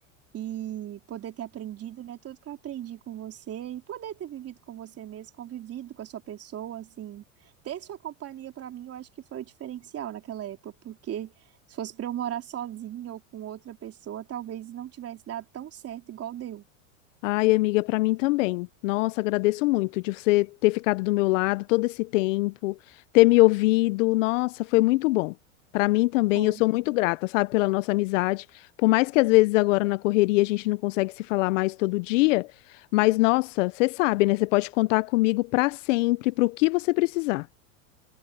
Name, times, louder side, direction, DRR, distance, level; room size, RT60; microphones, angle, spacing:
voice 1, 0.3-7.2 7.6-11.3 11.7-16.6 26.3-26.6, right 11 dB, 35° right, 3.8 m, -37 dB
voice 2, 17.2-22.8 23.1-25.3 25.7-28.4 28.8-32.5 32.9-37.5, left 21 dB, 65° left, 0.8 m, -23 dB
hypercardioid pair, 105°, 40 cm